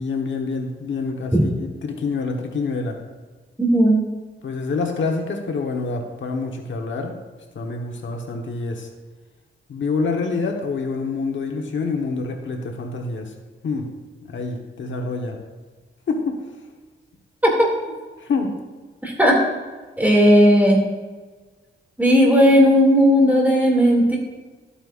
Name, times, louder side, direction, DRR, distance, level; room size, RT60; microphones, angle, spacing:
voice 1, 0.0-3.0 4.4-7.2 7.5-8.9 9.7-13.3 13.6-13.9 14.2-15.4 16.1-16.5 18.2-18.5, left 4 dB, 75° left, 2 dB, 1.2 m, -26 dB
voice 2, 3.6-4.0 17.4-17.7 19.0-19.4 20.0-20.8 22.0-24.2, equal, 10° right, -2 dB, 2.5 m, -15 dB
12.5 x 8.8 x 2.5 m, 1.3 s
wide cardioid pair, 115°, 20 cm